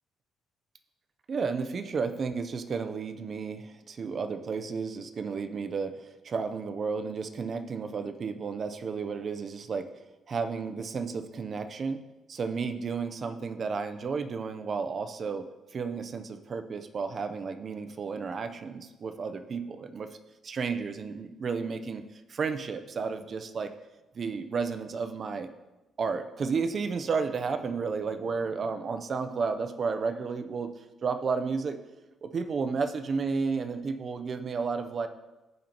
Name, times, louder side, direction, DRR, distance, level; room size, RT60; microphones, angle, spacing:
voice 1, 1.3-9.9 10.3-12.0 12.3-20.1 20.4-23.7 24.1-25.5 26.0-30.7 31.0-31.8 32.2-35.1, right 5 dB, 50° right, 9 dB, 0.7 m, -32 dB
14.5 x 5.3 x 3.0 m, 1.0 s
cardioid pair, 90°, 0 cm